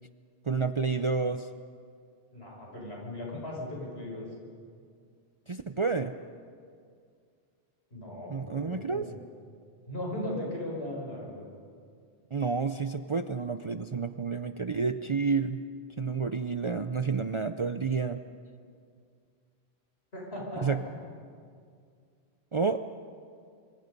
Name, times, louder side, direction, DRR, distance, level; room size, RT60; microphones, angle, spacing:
voice 1, 0.4-1.5 5.5-6.1 8.3-9.1 12.3-15.6 16.0-18.2 20.6-20.8 22.5-22.8, right 4 dB, 35° right, 8 dB, 0.5 m, -30 dB
voice 2, 2.3-4.3 7.9-9.0 9.9-11.5 20.1-20.8, left 1 dB, 70° left, -2 dB, 6.5 m, -37 dB
25.5 x 25.0 x 5.4 m, 2.2 s
omnidirectional pair, 1.1 m